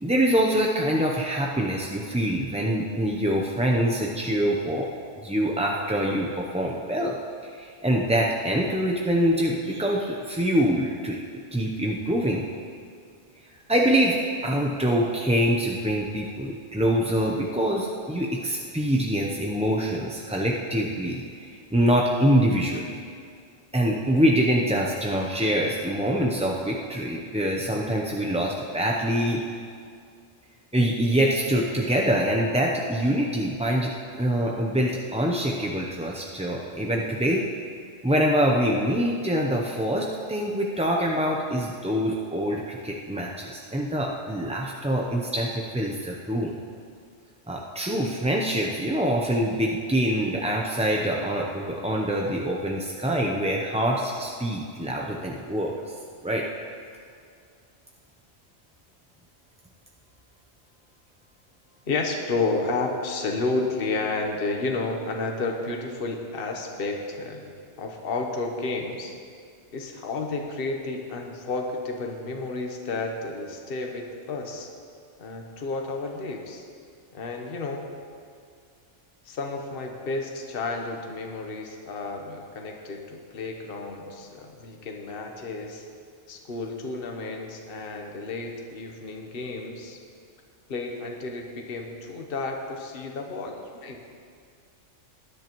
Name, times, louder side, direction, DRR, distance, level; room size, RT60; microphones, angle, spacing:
voice 1, 0.0-4.9 5.2-7.2 7.4-11.2 11.5-12.4 13.7-23.0 23.7-29.4 30.7-33.9 34.2-37.4 38.0-46.5 47.5-55.8 56.2-56.5, equal, 10° right, -1 dB, 0.5 m, -25 dB
voice 2, 61.9-67.5 67.8-69.2 69.7-74.7 75.2-76.6 77.1-77.8 79.2-85.9 86.3-90.0 90.7-94.0, left 3 dB, 55° left, 2 dB, 1.2 m, -31 dB
19.5 x 10.5 x 3.0 m, 2.2 s
omnidirectional pair, 1.2 m